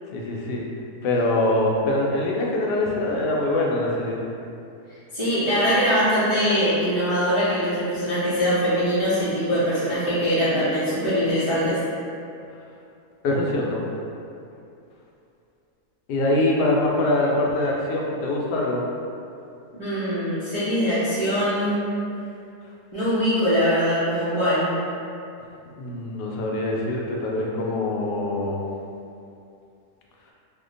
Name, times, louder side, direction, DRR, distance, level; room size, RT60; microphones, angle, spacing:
voice 1, 0.1-0.6 1.0-4.2 13.2-13.8 16.1-18.8 25.8-28.6, left 1 dB, 85° left, -2 dB, 1.2 m, -23 dB
voice 2, 5.1-11.8 19.7-21.9 22.9-24.7, equal, 45° right, -14 dB, 0.4 m, -22 dB
2.8 x 2.2 x 3.7 m, 2.6 s
omnidirectional pair, 1.7 m